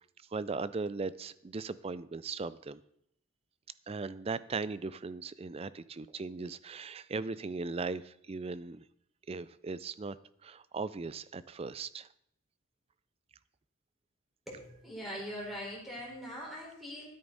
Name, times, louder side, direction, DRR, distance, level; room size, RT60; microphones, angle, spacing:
voice 1, 0.3-2.8 3.9-8.8 9.3-10.2 10.4-12.1, right 4 dB, 30° right, 16 dB, 0.4 m, -38 dB
voice 2, 14.5-17.1, equal, ahead, -5 dB, 4.4 m, -42 dB
12.5 x 10.5 x 4.0 m, 0.72 s
head